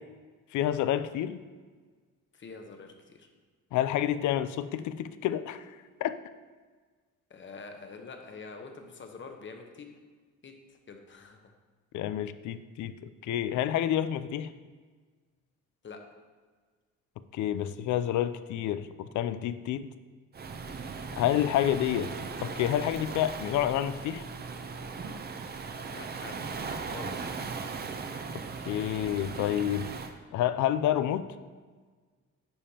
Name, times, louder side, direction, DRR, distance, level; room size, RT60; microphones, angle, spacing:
voice 1, 0.5-1.4 3.7-5.7 6.0-6.1 11.9-14.5 17.3-18.9 19.1-19.9 21.2-22.1 22.4-24.2 28.7-29.9 30.3-31.3, left 11 dB, 75° left, 13 dB, 0.5 m, -29 dB
voice 2, 2.3-3.3 7.3-9.9 10.4-10.5 10.9-11.5 15.8-16.0 25.9-27.3, left 4 dB, 40° left, 4 dB, 0.9 m, -46 dB
Waves surf, 20.3-30.1, right 4 dB, 35° right, 0.6 m, -38 dB
9.9 x 5.2 x 2.9 m, 1.5 s
cardioid pair, 90°, 30 cm